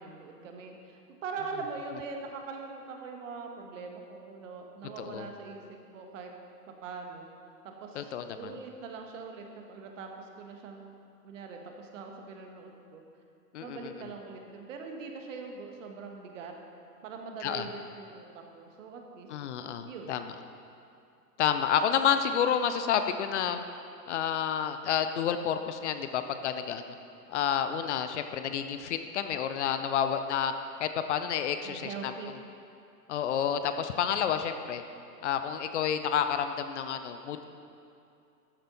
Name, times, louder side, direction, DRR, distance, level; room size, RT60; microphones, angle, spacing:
voice 1, 0.0-6.3 6.7-7.3 7.6-10.9 11.2-13.0 13.6-16.5 17.0-19.3 19.9-20.1 31.6-32.3, right 4 dB, 50° right, 3 dB, 1.5 m, -42 dB
voice 2, 8.0-8.5 13.5-14.1 17.4-17.7 19.3-20.3 21.4-23.6 24.1-26.8 27.3-30.5 30.8-32.1 33.1-34.8 35.2-37.4, left 8 dB, 45° left, 9 dB, 0.7 m, -30 dB
13.0 x 7.6 x 4.0 m, 2.6 s
figure-of-eight pair, 110°, 48 cm